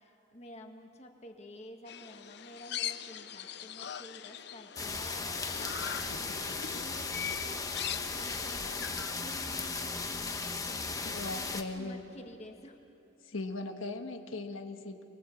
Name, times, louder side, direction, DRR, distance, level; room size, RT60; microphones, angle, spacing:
voice 1, 0.0-12.8, left 1 dB, 35° left, 4 dB, 1.7 m, -51 dB
sound 1, 1.9-9.1, left 9 dB, 55° left, 0.7 m, -41 dB
sound 2, 4.8-11.6, left 4 dB, 15° left, 1.0 m, -36 dB
voice 2, 10.9-12.0 13.2-15.0, left 2 dB, 85° left, 5 dB, 1.4 m, -39 dB
24.5 x 21.0 x 8.4 m, 2.7 s
head